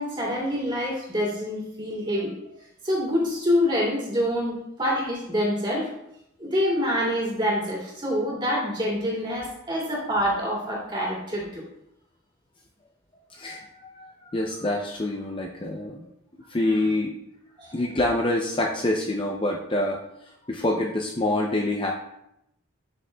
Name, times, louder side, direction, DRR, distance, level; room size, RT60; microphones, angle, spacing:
voice 1, 0.0-2.3 2.8-5.9 6.4-11.6 17.6-17.7, equal, 20° right, -4 dB, 2.4 m, -26 dB
voice 2, 13.3-16.1 16.5-17.2 17.7-21.9, left 1 dB, 25° left, 1 dB, 0.5 m, -26 dB
11.5 x 6.4 x 2.3 m, 0.81 s
head